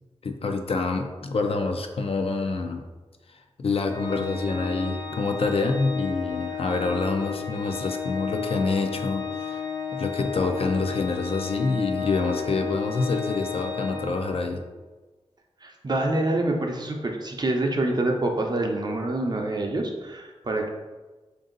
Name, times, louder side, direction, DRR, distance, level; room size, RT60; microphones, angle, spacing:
voice 1, 0.2-2.8 3.3-9.7 9.9-14.6, left 3 dB, 60° left, 5 dB, 0.4 m, -27 dB
Organ, 3.9-14.7, left 6 dB, 40° left, 0.8 m, -33 dB
voice 2, 15.6-20.7, right 2 dB, 40° right, 2 dB, 0.5 m, -26 dB
3.8 x 2.6 x 3.8 m, 1.2 s
wide cardioid pair, 100°, 11 cm